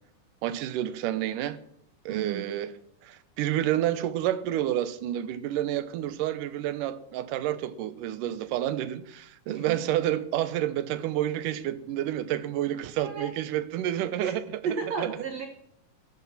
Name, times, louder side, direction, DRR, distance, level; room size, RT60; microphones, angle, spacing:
voice 1, 0.4-1.6 2.1-2.7 3.0-14.4 15.0-15.1, right 12 dB, 75° right, 2.4 m, -29 dB
voice 2, 2.1-2.6 9.5-9.8 13.0-13.3 14.2-14.3 14.6-15.5, right 6 dB, 60° right, 2.1 m, -33 dB
14.0 x 11.0 x 6.0 m
omnidirectional pair, 4.0 m